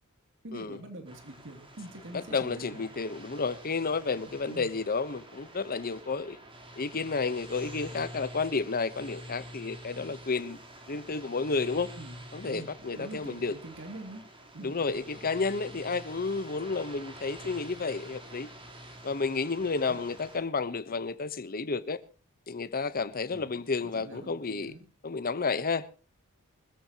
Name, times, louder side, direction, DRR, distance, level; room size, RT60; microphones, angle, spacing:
voice 1, 0.4-2.8 4.1-4.7 12.0-14.3 14.5-14.9 19.7-20.0 23.3-24.9, right 1 dB, 60° right, 2.8 m, -45 dB
sound 1, 1.1-20.4, right 1 dB, 25° right, 3.7 m, -48 dB
voice 2, 2.1-6.4 6.8-10.6 10.9-11.9 12.3-13.5 14.6-18.5 19.0-22.0 22.5-24.7 25.0-25.9, left 4 dB, 40° left, 1.0 m, -31 dB
24.0 x 14.0 x 2.9 m
head